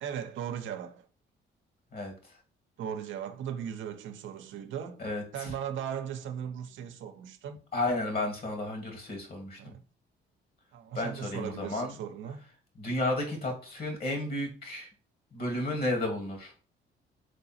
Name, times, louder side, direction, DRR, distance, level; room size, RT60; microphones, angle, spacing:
voice 1, 0.0-1.1 2.8-5.0 5.3-7.6 9.6-9.8 10.7-12.4, right 8 dB, 75° right, 0.6 m, -37 dB
voice 2, 5.0-5.5 7.7-9.7 10.9-11.9 12.8-14.9 15.3-16.5, left 2 dB, 50° left, 1.7 m, -32 dB
3.8 x 3.3 x 4.2 m
cardioid pair, 90°, 20 cm